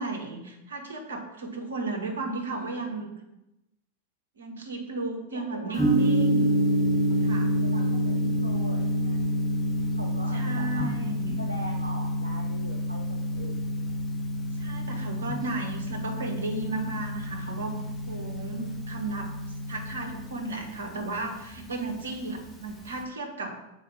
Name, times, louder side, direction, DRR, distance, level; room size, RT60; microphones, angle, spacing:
voice 1, 0.0-3.1 4.4-6.6 7.2-7.5 10.3-11.4 14.5-17.7 18.1-19.3 19.7-23.6, right 3 dB, 65° right, 3 dB, 1.2 m, -34 dB
voice 2, 2.5-3.3 5.3-6.0 7.6-9.5 9.9-10.9 11.4-14.4, right 1 dB, 85° right, 1 dB, 0.6 m, -43 dB
Gong, 5.8-23.0, equal, 5° left, 1.2 m, -28 dB
6.4 x 4.2 x 5.4 m, 0.91 s
figure-of-eight pair, 90°, 0 cm